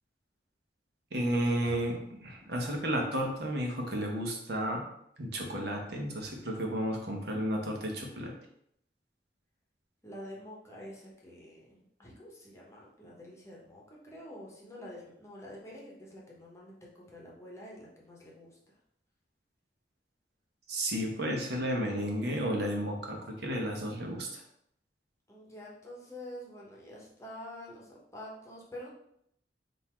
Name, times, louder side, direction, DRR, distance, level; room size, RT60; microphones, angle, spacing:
voice 1, 1.1-4.8 5.2-8.3 20.7-24.4, equal, 65° right, 1 dB, 1.0 m, -32 dB
voice 2, 10.0-18.6 25.3-28.9, left 1 dB, 15° left, -4 dB, 0.9 m, -47 dB
3.9 x 2.6 x 4.4 m, 0.72 s
head